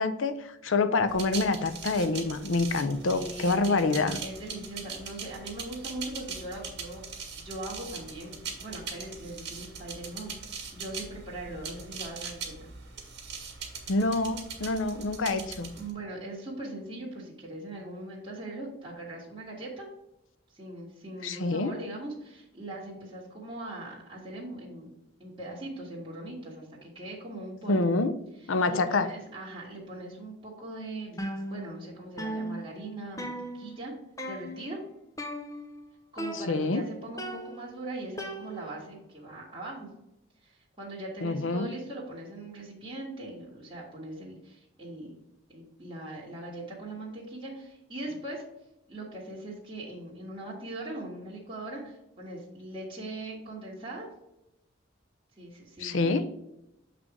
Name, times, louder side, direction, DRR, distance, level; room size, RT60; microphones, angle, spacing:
voice 1, 0.0-4.2 13.9-15.7 21.2-21.7 27.7-28.1 28.5-29.1 36.3-36.8 41.2-41.7 55.8-56.2, left 3 dB, 85° left, 11 dB, 0.6 m, -27 dB
sound 1, 1.1-15.9, right 5 dB, 60° right, 1.8 m, -41 dB
voice 2, 3.1-3.9 4.2-7.0 7.3-12.7 15.7-19.9 20.5-27.8 28.7-31.2 31.5-33.9 34.2-34.8 36.1-39.9 40.4-45.1 45.5-48.4 48.9-54.1 55.4-56.2, right 1 dB, 25° right, -6 dB, 1.7 m, -40 dB
sound 2, 31.2-31.9 32.2-33.9 34.2-34.7 35.2-35.8 36.2-36.8 37.2-38.9, equal, 15° left, 0.7 m, -38 dB
7.4 x 3.4 x 4.9 m, 0.84 s
head